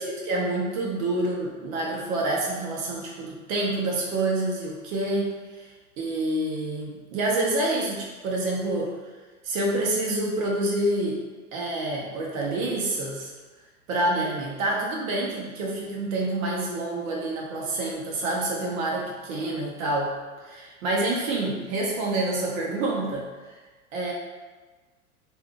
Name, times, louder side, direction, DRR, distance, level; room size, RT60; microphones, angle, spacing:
voice 1, 0.0-5.7 6.0-8.9 9.4-11.2 11.5-13.3 13.9-23.5 23.9-24.1, right 2 dB, 60° right, -2 dB, 1.0 m, -27 dB
3.5 x 2.7 x 2.4 m, 1.3 s
hypercardioid pair, 105°, 45 cm